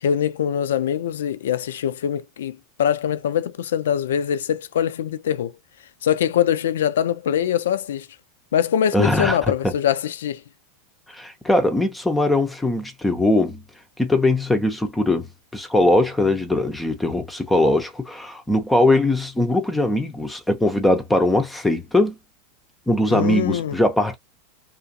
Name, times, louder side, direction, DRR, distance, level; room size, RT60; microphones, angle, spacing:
voice 1, 0.0-5.5 6.0-8.1 8.5-10.4 23.1-23.8, left 9 dB, 65° left, 0.3 m, -23 dB
voice 2, 8.9-9.4 11.1-13.6 14.0-15.3 15.5-22.2 22.9-24.2, left 1 dB, 5° left, 0.5 m, -20 dB
2.5 x 2.4 x 2.5 m
figure-of-eight pair, 85°, 0 cm